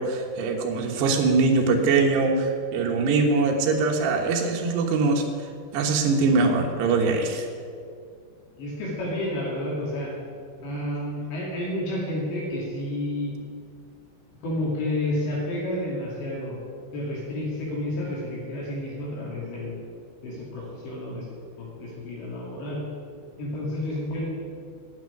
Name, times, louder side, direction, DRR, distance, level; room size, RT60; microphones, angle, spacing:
voice 1, 0.0-5.3 5.7-7.5, right 3 dB, 70° right, 2 dB, 3.3 m, -22 dB
voice 2, 8.6-10.1 10.6-13.4 14.4-19.8 20.2-21.3 21.6-22.8 23.4-24.3, left 1 dB, 70° left, -5 dB, 4.6 m, -30 dB
9.5 x 9.2 x 10.0 m, 2.3 s
omnidirectional pair, 5.4 m